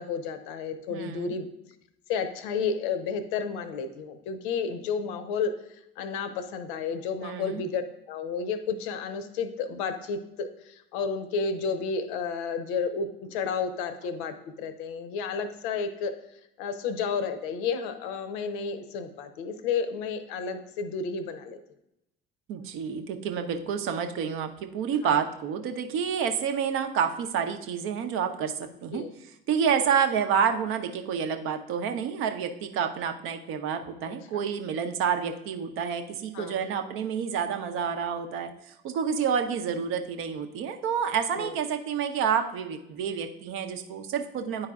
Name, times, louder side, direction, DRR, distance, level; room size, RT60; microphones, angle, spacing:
voice 1, 0.0-1.4 2.1-7.8 8.1-16.1 16.6-21.6 25.0-25.1 28.9-29.1 34.0-34.4 36.3-36.7 41.4-41.6, left 5 dB, 60° left, 10 dB, 0.7 m, -31 dB
voice 2, 0.9-1.3 7.2-7.6 22.5-28.5 28.8-29.0 29.5-44.7, right 7 dB, 45° right, 7 dB, 0.7 m, -29 dB
9.7 x 4.7 x 2.4 m, 0.83 s
figure-of-eight pair, 60°, 29 cm